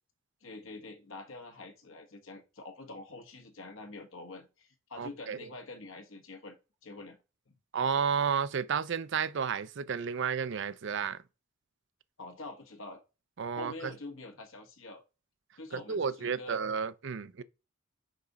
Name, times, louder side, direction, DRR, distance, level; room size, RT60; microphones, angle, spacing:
voice 1, 0.4-7.2 7.5-7.6 12.2-13.0 13.5-15.0 15.6-16.6, left 2 dB, 75° left, 1.4 m, -46 dB
voice 2, 5.0-5.4 7.7-11.2 13.4-13.9 15.9-17.4, right 6 dB, 60° right, 0.5 m, -32 dB
5.3 x 5.0 x 4.0 m
head